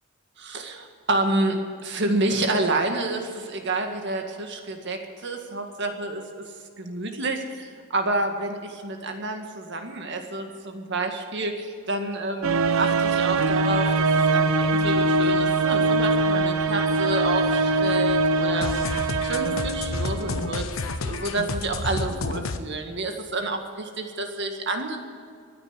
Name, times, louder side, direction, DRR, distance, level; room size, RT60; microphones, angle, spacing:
voice 1, 0.4-6.2 6.8-18.7 19.2-20.7 21.0-25.0, right 2 dB, 60° right, 4 dB, 1.9 m, -29 dB
sound 1, 12.4-20.8, right 3 dB, 85° right, 0.8 m, -23 dB
sound 2, 18.6-22.6, left 3 dB, 80° left, 0.9 m, -30 dB
14.5 x 9.7 x 9.8 m, 2.2 s
head